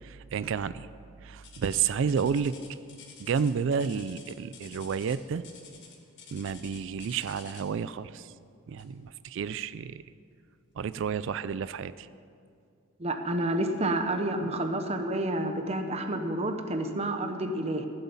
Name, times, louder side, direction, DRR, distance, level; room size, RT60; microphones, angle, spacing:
voice 1, 0.0-0.9 1.2-2.5 3.2-5.4 6.3-8.3 8.7-10.0 10.8-12.1, right 6 dB, 60° right, 16 dB, 0.3 m, -31 dB
sound 1, 1.4-7.8 8.8-9.0 9.6-9.7 10.4-10.5, left 6 dB, 55° left, 1.8 m, -50 dB
voice 2, 13.0-17.9, right 1 dB, 30° right, 6 dB, 0.9 m, -29 dB
15.0 x 8.0 x 7.1 m, 2.3 s
head